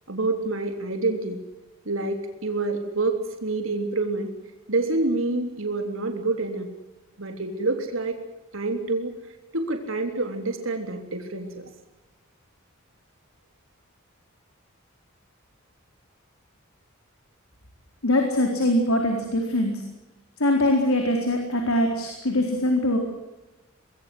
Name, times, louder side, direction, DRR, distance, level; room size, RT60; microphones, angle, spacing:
voice 1, 0.1-1.4 1.8-4.3 4.7-6.7 7.2-8.2 8.5-9.1 9.5-11.7, right 2 dB, 70° right, 5 dB, 3.4 m, -27 dB
voice 2, 18.0-19.7 20.4-23.0, left 1 dB, 85° left, 3 dB, 4.2 m, -22 dB
25.5 x 21.0 x 7.9 m, 1.0 s
head